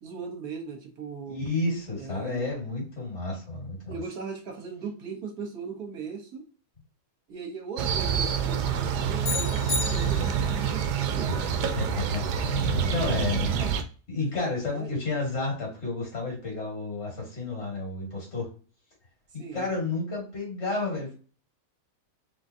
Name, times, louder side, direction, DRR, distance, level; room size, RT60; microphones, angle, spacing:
voice 1, 0.0-1.5 2.0-2.5 3.9-6.4 7.3-11.3 13.0-13.7 14.2-14.3 14.7-14.9 19.4-19.6, right 5 dB, 65° right, 2 dB, 1.6 m, -38 dB
voice 2, 1.3-3.9 11.8-13.6 14.1-18.5 19.3-21.1, left 2 dB, 45° left, -1 dB, 2.4 m, -31 dB
sound 1, 7.8-13.8, right 7 dB, 85° right, 1.3 m, -27 dB
sound 2, 9.2-10.6, left 3 dB, 65° left, 1.9 m, -32 dB
3.9 x 3.9 x 2.7 m, 0.38 s
omnidirectional pair, 1.7 m